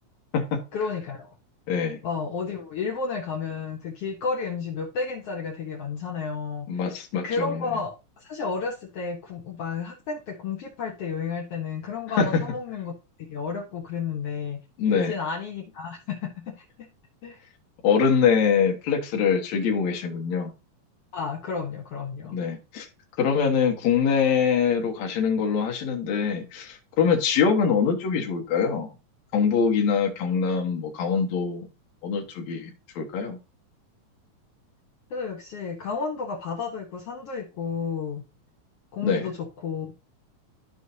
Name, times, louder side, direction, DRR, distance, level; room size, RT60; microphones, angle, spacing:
voice 1, 0.7-1.3 2.0-6.9 7.2-12.9 13.3-14.6 14.9-16.3 16.6-16.7 17.2-17.4 21.1-22.4 35.1-38.2 38.9-39.9, left 5 dB, 85° left, 1 dB, 1.3 m, -32 dB
voice 2, 1.7-2.0 6.7-7.7 12.2-12.4 14.8-15.1 17.8-20.5 22.3-22.9 23.2-28.9 29.3-31.7 32.0-32.7 33.0-33.4 39.0-39.3, left 6 dB, 60° left, 2 dB, 2.3 m, -24 dB
13.0 x 4.8 x 2.7 m, 0.29 s
omnidirectional pair, 4.0 m